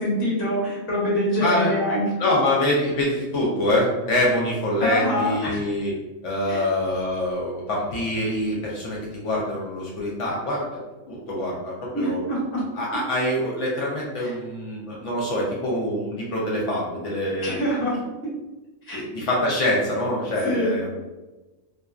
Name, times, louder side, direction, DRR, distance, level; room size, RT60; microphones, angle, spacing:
voice 1, 0.0-2.0 4.8-5.6 6.5-6.6 11.9-12.6 14.2-14.3 17.4-17.9 18.9-19.0 20.4-20.7, equal, 15° left, -7 dB, 0.5 m, -25 dB
voice 2, 1.4-1.7 2.2-5.9 6.2-12.2 12.7-17.5 18.9-20.9, left 1 dB, 70° left, -3 dB, 0.8 m, -25 dB
2.5 x 2.2 x 2.3 m, 1.1 s
omnidirectional pair, 1.4 m